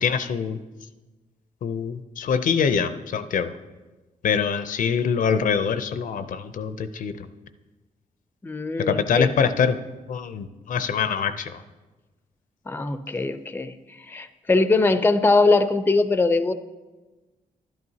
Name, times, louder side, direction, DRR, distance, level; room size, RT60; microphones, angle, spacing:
voice 1, 0.0-0.6 1.6-3.5 4.2-7.1 8.9-9.8 10.1-11.6, left 6 dB, 65° left, 11 dB, 0.5 m, -24 dB
voice 2, 8.4-9.3 12.7-13.7 14.1-16.5, left 3 dB, 15° left, 11 dB, 0.5 m, -21 dB
11.5 x 10.5 x 2.8 m, 1.2 s
cardioid pair, 85°, 15 cm